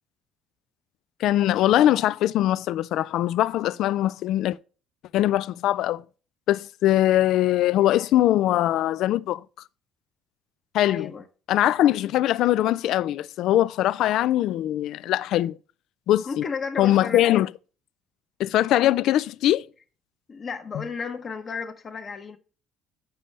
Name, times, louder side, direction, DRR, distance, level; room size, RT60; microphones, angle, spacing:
voice 1, 1.2-4.6 5.1-6.0 6.5-9.4 10.7-11.1 11.5-15.6 16.1-16.4 16.8-17.5 18.4-19.6, left 13 dB, 65° left, 0.3 m, -22 dB
voice 2, 10.9-11.3 16.3-17.4 20.3-22.4, left 5 dB, 35° left, 0.9 m, -33 dB
8.9 x 6.8 x 3.2 m
cardioid pair, 110°, 0 cm